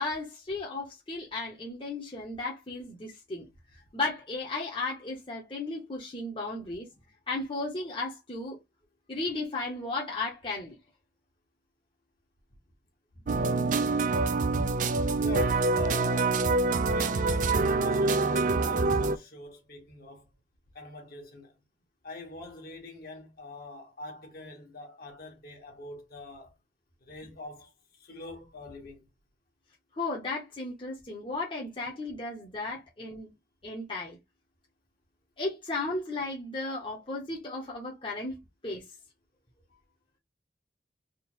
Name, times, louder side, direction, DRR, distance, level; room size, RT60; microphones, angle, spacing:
voice 1, 0.0-3.5 3.7-6.9 7.3-8.6 9.1-10.8 29.9-33.3 33.6-34.2 35.4-38.4 38.6-38.8, left 2 dB, 30° left, 1.0 m, -35 dB
sound 1, 13.3-19.2, right 3 dB, 45° right, 0.4 m, -25 dB
voice 2, 15.2-16.5 16.9-20.3 20.7-21.6 22.0-26.5 27.0-29.1, left 2 dB, 55° left, 1.5 m, -44 dB
3.7 x 2.3 x 4.4 m
head